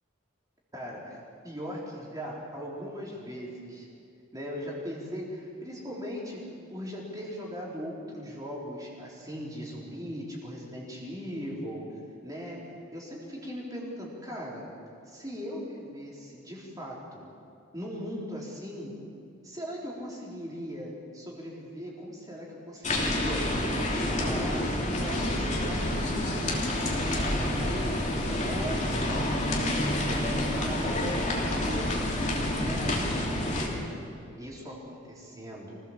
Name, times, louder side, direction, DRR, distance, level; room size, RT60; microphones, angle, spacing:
voice 1, 0.7-3.9 4.3-6.4 6.7-12.6 12.9-14.7 15.1-17.3 17.7-19.0 19.4-23.5 23.8-24.7 25.0-28.0 28.4-29.7 30.2-31.9 32.6-33.9 34.4-35.8, equal, 15° right, -4 dB, 3.7 m, -39 dB
sound 1, 22.8-33.7, left 1 dB, 35° left, 3.0 m, -28 dB
24.5 x 16.5 x 7.3 m, 2.5 s
head